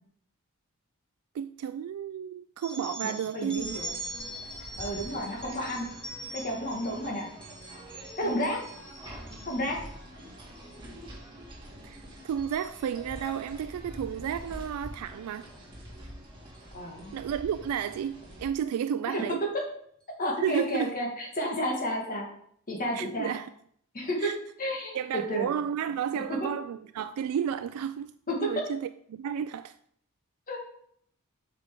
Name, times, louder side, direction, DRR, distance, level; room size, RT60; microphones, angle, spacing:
voice 1, 1.3-3.8 8.2-8.5 11.8-15.5 17.1-19.4 20.4-20.9 22.9-23.5 24.2-24.4 24.9-28.1 28.4-29.8, right 8 dB, 90° right, 0.3 m, -32 dB
sound 1, 2.6-9.9 10.4-10.8 11.1-11.5 11.9-13.3 14.2-14.5 15.4-15.6 16.5-16.6 17.0-17.1 17.7-17.9, right 1 dB, 5° left, 1.4 m, -43 dB
voice 2, 3.0-3.9 4.8-5.9 6.3-7.3 8.2-8.6 9.5-9.8 16.7-17.1 19.1-19.2 20.2-22.3 22.7-23.3 23.9-24.3 24.6-25.5 26.2-26.3 28.3-28.6 30.5-30.7, equal, 40° left, 1.8 m, -31 dB
sound 2, 3.5-18.5, right 1 dB, 20° right, 2.3 m, -46 dB
8.0 x 5.7 x 3.8 m
head